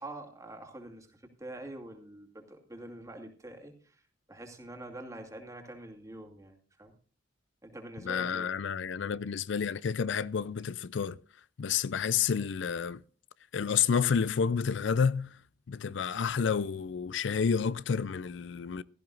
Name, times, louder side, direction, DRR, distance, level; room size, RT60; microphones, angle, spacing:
voice 1, 0.0-4.0 4.3-6.9 7.6-8.5, right 1 dB, 15° right, 2.4 m, -45 dB
voice 2, 8.0-11.2 11.6-13.0 13.5-15.4 15.7-18.8, left 6 dB, 70° left, 0.4 m, -30 dB
16.5 x 13.5 x 2.5 m
head